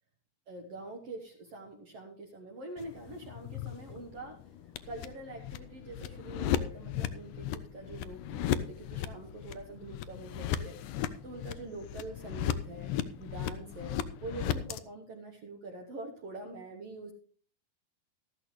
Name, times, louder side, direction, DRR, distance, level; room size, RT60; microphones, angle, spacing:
voice 1, 0.5-17.1, right 2 dB, 60° right, 1 dB, 2.0 m, -45 dB
sound 1, 2.8-14.8, left 10 dB, 80° left, 2.0 m, -36 dB
13.0 x 12.5 x 3.1 m, 0.42 s
omnidirectional pair, 3.8 m